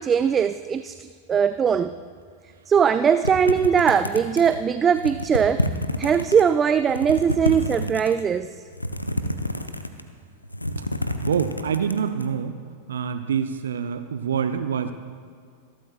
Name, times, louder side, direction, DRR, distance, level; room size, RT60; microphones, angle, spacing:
voice 1, 0.0-1.9 2.7-5.7 6.0-8.5, right 7 dB, 20° right, 12 dB, 0.3 m, -20 dB
sound 1, 3.2-4.6 5.0-6.4 6.8-8.2 8.7-10.1 10.4-12.3, left 1 dB, 85° left, 0.7 m, -28 dB
voice 2, 11.2-12.5 12.9-14.9, right 7 dB, 65° right, 9 dB, 0.6 m, -26 dB
27.0 x 12.0 x 2.4 m, 2.1 s
figure-of-eight pair, 90°, 0 cm